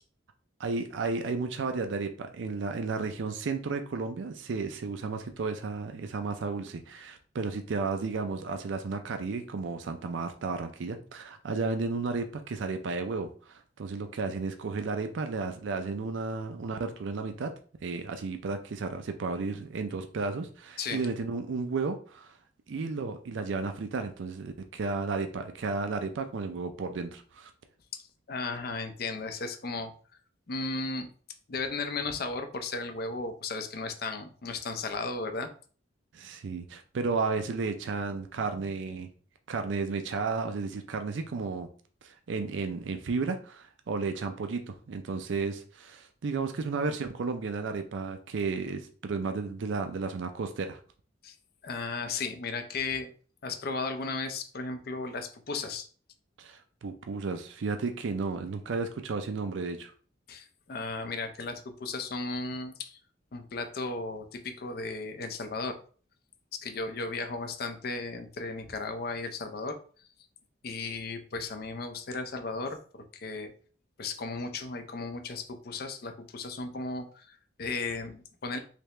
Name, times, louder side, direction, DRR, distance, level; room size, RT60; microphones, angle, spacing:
voice 1, 0.6-17.5 17.8-22.4 22.7-27.5 36.1-39.1 39.5-41.7 42.0-50.8 56.4-59.9, right 4 dB, 75° right, 7 dB, 0.4 m, -33 dB
voice 2, 28.3-29.9 30.5-31.1 31.5-35.5 51.2-51.3 51.6-53.1 53.4-55.9 60.3-63.0 63.3-65.8 66.5-69.8 70.6-73.5 74.0-78.6, left 3 dB, 55° left, 6 dB, 0.5 m, -35 dB
3.4 x 2.8 x 3.1 m, 0.43 s
head